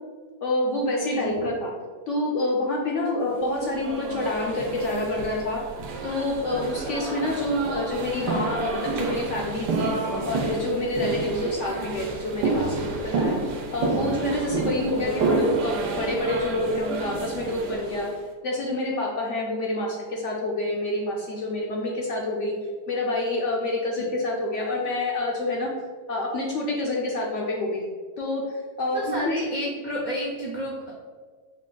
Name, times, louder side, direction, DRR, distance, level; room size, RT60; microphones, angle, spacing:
voice 1, 0.4-1.7 2.1-5.6 6.0-9.9 10.2-13.4 13.7-18.1 18.4-22.6 22.9-25.7 26.1-27.8 28.2-28.4 28.8-29.4, left 1 dB, 65° left, -2 dB, 0.8 m, -27 dB
voice 2, 1.1-1.5 24.0-24.1 28.9-30.9, equal, 55° right, -6 dB, 0.5 m, -31 dB
sound 1, 3.5-18.2, right 3 dB, 85° right, 1.3 m, -29 dB
4.9 x 2.6 x 3.7 m, 1.5 s
omnidirectional pair, 1.7 m